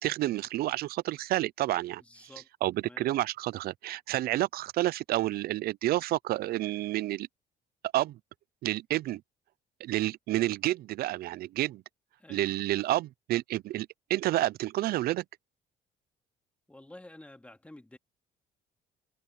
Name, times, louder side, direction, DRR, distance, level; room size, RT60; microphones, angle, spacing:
voice 1, 0.0-2.0 2.6-7.3 7.9-8.2 8.6-9.2 9.8-11.8 12.3-15.2, right 16 dB, 65° right, 0.5 m, -29 dB
voice 2, 2.0-2.5 2.8-3.1 12.2-12.6 16.7-18.0, left 1 dB, 10° left, 2.2 m, -50 dB
cardioid pair, 110°, 17 cm